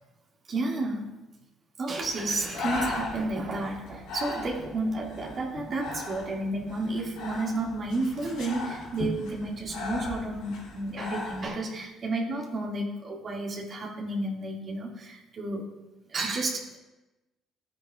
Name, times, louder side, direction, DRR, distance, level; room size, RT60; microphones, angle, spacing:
voice 1, 0.5-1.1 1.8-15.7 16.1-16.8, right 2 dB, 50° right, -2 dB, 2.3 m, -31 dB
Breathing, 2.0-11.5, left 3 dB, 80° left, 3.3 m, -38 dB
11.0 x 9.7 x 2.5 m, 1.0 s
hypercardioid pair, 55°, 0 cm